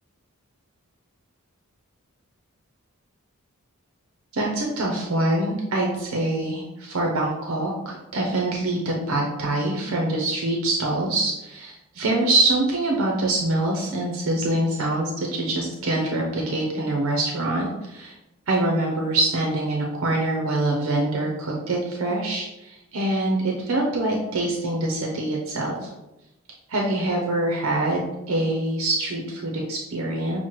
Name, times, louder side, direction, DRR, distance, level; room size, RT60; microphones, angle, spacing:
voice 1, 4.3-18.1 18.5-25.9 26.7-30.4, right 2 dB, 65° right, -1 dB, 0.6 m, -25 dB
6.0 x 2.1 x 3.0 m, 0.94 s
head